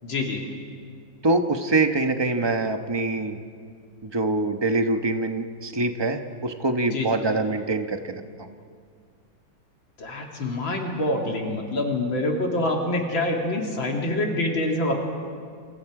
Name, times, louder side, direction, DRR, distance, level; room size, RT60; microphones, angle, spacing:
voice 1, 0.0-0.5 6.9-7.1 10.0-14.9, left 1 dB, 75° left, 1 dB, 3.1 m, -26 dB
voice 2, 1.2-3.4 4.0-8.2, right 2 dB, 20° right, 6 dB, 0.8 m, -24 dB
29.0 x 28.0 x 4.9 m, 2.2 s
omnidirectional pair, 2.1 m